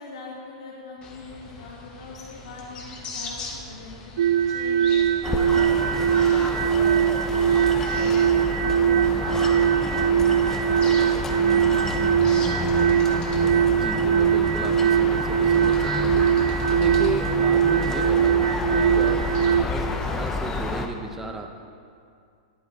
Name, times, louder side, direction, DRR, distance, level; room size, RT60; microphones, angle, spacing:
voice 1, 0.0-4.0 4.5-7.4 7.9-8.3 8.6-8.9 9.2-9.4 9.7-12.5, left 4 dB, 85° left, -6 dB, 2.4 m, -42 dB
sound 1, 1.0-20.8, left 4 dB, 30° left, 2.0 m, -40 dB
sound 2, 4.2-19.6, right 9 dB, 75° right, 0.4 m, -21 dB
sound 3, 5.2-20.9, left 3 dB, 10° left, 0.8 m, -30 dB
voice 2, 13.7-21.5, right 3 dB, 10° right, 4 dB, 1.1 m, -34 dB
11.5 x 11.0 x 4.4 m, 2.3 s
hypercardioid pair, 130°, 3 cm